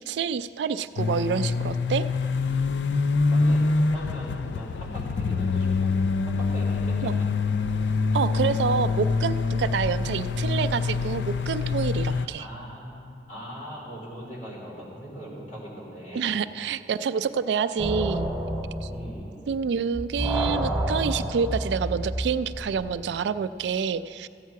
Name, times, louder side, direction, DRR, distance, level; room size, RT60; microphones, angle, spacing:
voice 1, 0.0-2.0 7.0-7.1 8.1-12.4 16.1-18.3 18.8-18.9 19.5-24.3, right 6 dB, 75° right, 13 dB, 0.3 m, -27 dB
sound 1, 1.0-12.3, left 4 dB, 85° left, 0.4 m, -25 dB
voice 2, 3.3-5.9 6.2-7.3 12.0-16.3 18.9-19.4, equal, 45° left, -6 dB, 3.4 m, -40 dB
sound 2, 17.8-19.7 19.9-22.9, right 1 dB, ahead, 1.3 m, -29 dB
14.5 x 8.2 x 4.7 m, 2.4 s
head